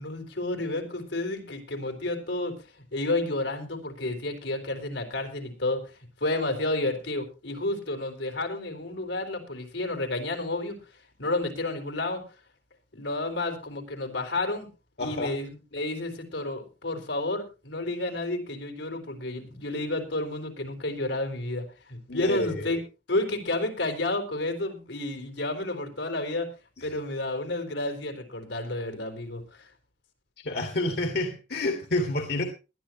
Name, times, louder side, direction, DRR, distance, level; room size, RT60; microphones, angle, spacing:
voice 1, 0.0-2.5 2.9-5.8 6.2-10.8 11.2-12.2 12.9-14.7 15.0-22.8 23.1-26.5 26.8-29.7, left 2 dB, 85° left, 4.2 m, -31 dB
voice 2, 15.0-15.3 22.1-22.8 26.8-26.9 30.4-32.4, left 2 dB, 60° left, 2.0 m, -29 dB
20.0 x 12.5 x 2.9 m
head